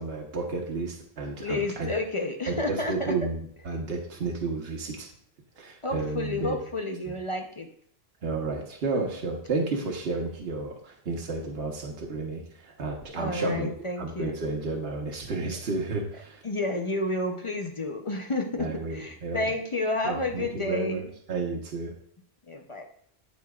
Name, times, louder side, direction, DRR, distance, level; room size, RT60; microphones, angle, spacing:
voice 1, 0.0-1.9 2.7-5.1 5.6-6.6 7.0-7.1 8.2-13.7 14.0-16.4 18.6-19.5 20.0-21.9, right 3 dB, 70° right, 0 dB, 1.3 m, -32 dB
voice 2, 1.4-3.2 5.8-7.7 13.1-14.3 16.4-21.1 22.5-22.8, left 2 dB, 35° left, 3 dB, 0.7 m, -30 dB
13.5 x 4.5 x 2.4 m, 0.63 s
omnidirectional pair, 1.1 m